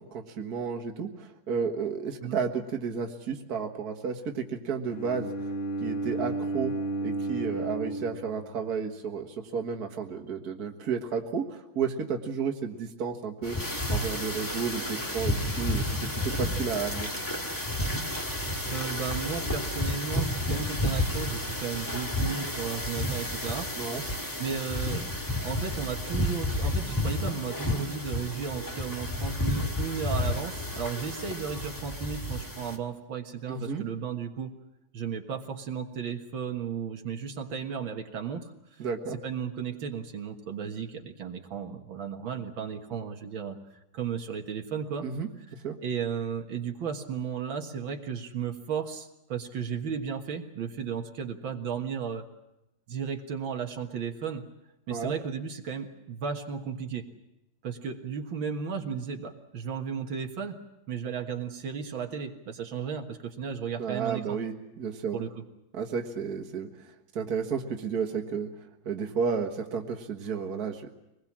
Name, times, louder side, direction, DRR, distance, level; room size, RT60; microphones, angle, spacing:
voice 1, 0.1-5.3 5.8-6.7 7.0-13.6 13.9-17.1 23.7-24.0 33.5-33.9 38.8-39.2 45.0-45.3 45.6-45.8 54.9-55.1 63.8-65.3 65.7-68.5 68.9-70.9, right 6 dB, 50° right, 4 dB, 2.0 m, -32 dB
Bowed string instrument, 4.9-9.0, right 2 dB, 45° left, 0.9 m, -33 dB
sound 1, 13.4-32.8, left 1 dB, 10° left, 1.6 m, -31 dB
voice 2, 18.7-25.1 25.4-34.5 34.9-38.5 39.2-43.6 43.9-45.1 45.8-52.3 52.9-54.5 54.9-57.1 57.6-60.6 60.9-64.4 65.1-65.3, right 6 dB, 80° right, 4 dB, 2.3 m, -34 dB
24.5 x 20.5 x 7.4 m, 0.90 s
omnidirectional pair, 2.1 m